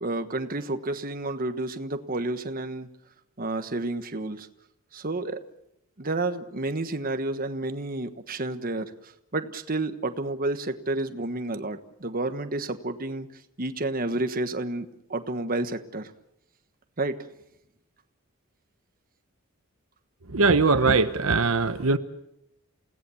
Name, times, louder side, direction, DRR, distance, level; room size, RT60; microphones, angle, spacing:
voice 1, 0.0-2.9 3.4-4.5 4.9-5.4 6.0-13.3 13.6-16.1 17.0-17.2, right 2 dB, 45° right, 9 dB, 1.3 m, -30 dB
voice 2, 20.3-22.0, right 3 dB, 75° right, 10 dB, 1.1 m, -21 dB
29.0 x 17.5 x 7.1 m, 0.82 s
head